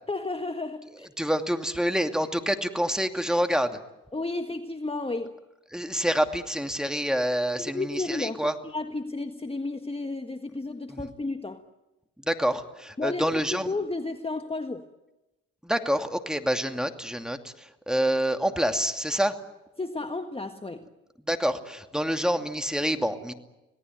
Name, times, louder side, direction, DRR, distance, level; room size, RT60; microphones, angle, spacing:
voice 1, 0.1-1.1 4.1-5.4 7.6-11.6 13.0-14.9 19.8-20.9, left 3 dB, 15° left, 1.6 m, -32 dB
voice 2, 1.2-3.8 5.7-8.5 10.9-11.1 12.2-13.7 15.6-19.4 21.2-23.3, equal, ahead, 2.6 m, -27 dB
26.5 x 18.0 x 9.5 m
hypercardioid pair, 50°, 35 cm